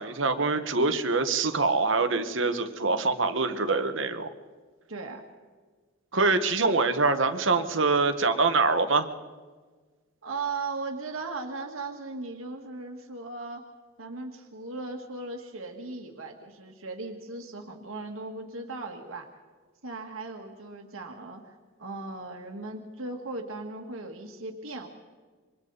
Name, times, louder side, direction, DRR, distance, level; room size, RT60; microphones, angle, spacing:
voice 1, 0.0-4.3 6.1-9.1, right 3 dB, 65° right, 8 dB, 1.4 m, -24 dB
voice 2, 4.9-5.2 10.2-13.6 14.0-19.3 19.8-24.9, right 3 dB, 85° right, 3 dB, 1.9 m, -37 dB
27.5 x 24.5 x 4.1 m, 1.4 s
head